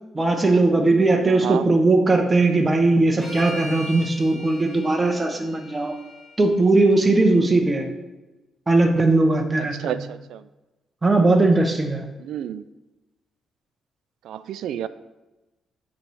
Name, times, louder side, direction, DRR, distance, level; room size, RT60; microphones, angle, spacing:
voice 1, 0.1-6.0 6.4-7.9 8.7-10.0 11.0-12.0, right 2 dB, 15° right, 5 dB, 0.6 m, -19 dB
voice 2, 1.3-1.7 9.7-10.4 12.2-12.6 14.2-14.9, right 10 dB, 75° right, 14 dB, 0.3 m, -30 dB
sound 1, 3.2-7.4, left 1 dB, 5° left, 1.3 m, -40 dB
9.2 x 3.1 x 4.7 m, 1.1 s
cardioid pair, 175°, 0 cm